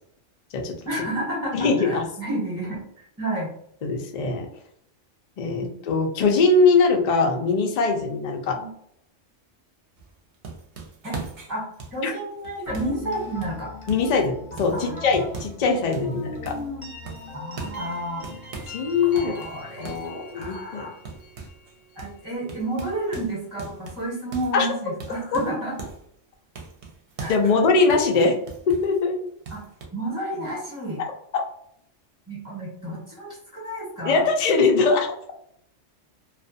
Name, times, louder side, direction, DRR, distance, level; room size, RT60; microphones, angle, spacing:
voice 1, 0.8-3.5 5.6-5.7 8.6-8.7 11.0-11.2 11.5-13.7 14.7-15.2 16.0-16.9 17.3-18.3 19.1-19.9 20.3-21.0 21.9-25.8 27.2-27.6 28.2-28.3 29.5-29.6 29.9-31.0 32.3-34.2, right 1 dB, 15° right, -7 dB, 0.9 m, -31 dB
voice 2, 1.5-2.0 3.8-4.5 5.4-8.6 12.0-12.1 13.9-14.3 14.6-16.5 18.7-19.3 19.8-20.9 24.5-24.7 27.3-28.4 28.7-29.2 34.0-35.1, left 4 dB, 90° left, 2 dB, 0.3 m, -21 dB
sound 1, 10.0-14.2 14.6-15.7 15.9-16.7 17.1-18.8 19.2-21.7 22.0-22.2 22.5-26.1 26.6-29.0 29.5-29.9, right 4 dB, 60° right, 0.8 m, -40 dB
sound 2, 12.7-22.4, left 3 dB, 35° left, 0.5 m, -42 dB
2.4 x 2.3 x 2.6 m, 0.71 s
omnidirectional pair, 1.3 m